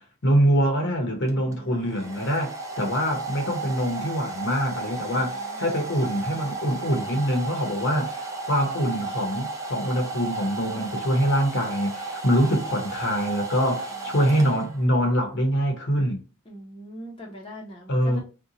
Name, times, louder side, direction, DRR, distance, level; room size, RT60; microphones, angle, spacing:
voice 1, 0.2-16.2 17.9-18.2, equal, 55° left, 0.8 m, -24 dB
voice 2, 1.3-2.2 5.0-5.8 13.9-14.2 16.5-18.2, equal, 25° left, 0.7 m, -43 dB
Domestic sounds home sounds, 1.3-15.0, right 3 dB, 15° right, 0.5 m, -34 dB
2.7 x 2.2 x 3.8 m
head